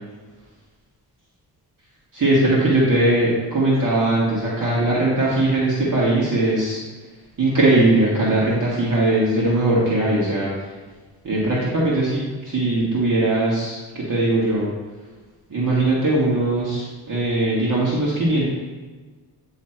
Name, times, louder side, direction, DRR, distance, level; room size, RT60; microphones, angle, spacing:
voice 1, 2.1-6.8 7.4-10.7 11.2-14.7 15.5-18.5, right 2 dB, 50° right, -7 dB, 1.7 m, -20 dB
9.3 x 3.3 x 4.4 m, 1.3 s
wide cardioid pair, 125°, 42 cm